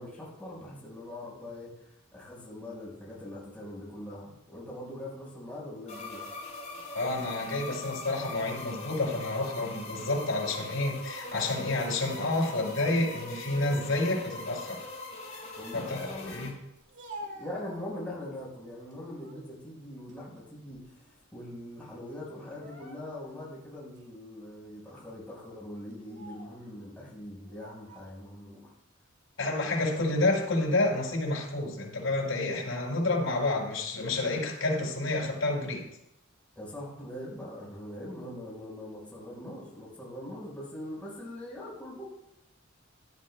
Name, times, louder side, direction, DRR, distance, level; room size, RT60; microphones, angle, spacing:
voice 1, 0.0-1.7 2.1-6.2 15.6-16.3 17.3-20.9 21.3-28.7 36.6-42.1, left 1 dB, 5° left, -5 dB, 4.5 m, -42 dB
sound 1, 5.9-16.5, left 2 dB, 35° left, 4.0 m, -42 dB
voice 2, 6.9-14.8 15.7-16.0 16.3-16.5 29.4-35.8, left 2 dB, 85° left, -2 dB, 4.6 m, -29 dB
Speech, 16.8-18.4 18.9-19.5 19.9-21.1 21.4-21.6 22.4-23.4 24.0-24.1 24.9-25.1 25.9-26.6 27.5-28.2, right 1 dB, 60° right, 2.2 m, -48 dB
17.0 x 11.5 x 2.2 m, 0.80 s
head